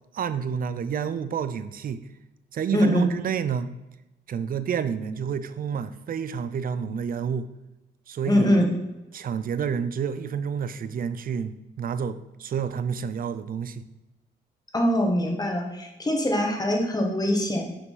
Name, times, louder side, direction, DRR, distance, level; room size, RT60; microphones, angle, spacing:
voice 1, 0.1-2.0 2.5-3.7 4.3-7.5 8.1-8.6 9.1-13.8, right 7 dB, 45° right, 13 dB, 0.5 m, -29 dB
voice 2, 2.7-3.1 8.3-8.7 14.7-17.6, left 1 dB, 20° left, 2 dB, 1.4 m, -23 dB
6.2 x 4.9 x 3.9 m, 0.98 s
cardioid pair, 90°, 20 cm